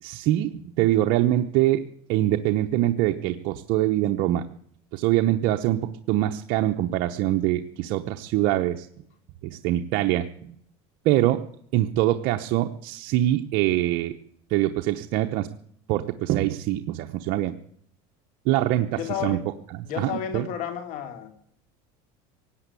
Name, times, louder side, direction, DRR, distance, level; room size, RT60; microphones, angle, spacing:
voice 1, 0.0-1.8 2.1-4.4 4.9-8.9 9.4-10.6 11.0-11.4 11.7-14.2 14.5-15.5 15.9-17.5 18.5-19.4 20.0-20.4, right 14 dB, 60° right, 5 dB, 0.8 m, -24 dB
voice 2, 19.0-19.5 19.8-21.4, left 9 dB, 60° left, 8 dB, 2.8 m, -32 dB
17.5 x 9.0 x 8.4 m, 0.68 s
supercardioid pair, 130°, 15 cm